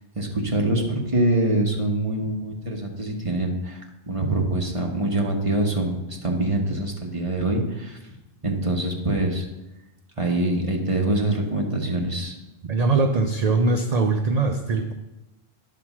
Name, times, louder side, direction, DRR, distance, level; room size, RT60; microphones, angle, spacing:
voice 1, 0.1-8.0 8.4-9.5 10.2-12.4, right 1 dB, 30° right, 1 dB, 1.2 m, -24 dB
voice 2, 12.6-14.9, right 3 dB, 50° right, 5 dB, 0.5 m, -21 dB
9.7 x 4.2 x 6.0 m, 1.0 s
omnidirectional pair, 1.2 m